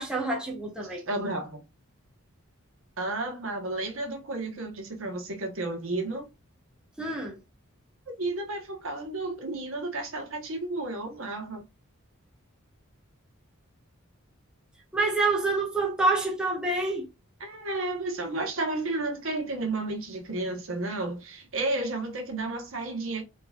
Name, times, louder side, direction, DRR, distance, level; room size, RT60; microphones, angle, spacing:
voice 1, 0.0-1.0 7.0-7.4 14.9-17.1, right 2 dB, 5° right, 1.0 m, -27 dB
voice 2, 1.1-1.6 3.0-6.3 8.1-11.6 17.4-23.2, right 2 dB, 65° right, 1.2 m, -32 dB
3.9 x 3.6 x 2.4 m
head